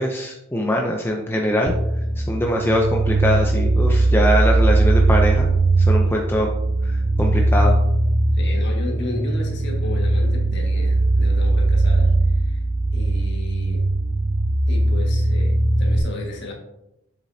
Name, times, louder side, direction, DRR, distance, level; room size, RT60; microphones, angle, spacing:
voice 1, 0.0-1.7 2.2-5.5 5.9-6.5 7.2-7.7, equal, 10° left, 0 dB, 0.5 m, -22 dB
sound 1, 1.7-16.0, right 2 dB, 40° right, 0.7 m, -19 dB
voice 2, 8.3-12.6 12.9-13.8 14.7-16.5, left 2 dB, 50° left, -1 dB, 1.7 m, -34 dB
7.3 x 7.1 x 2.8 m, 0.87 s
head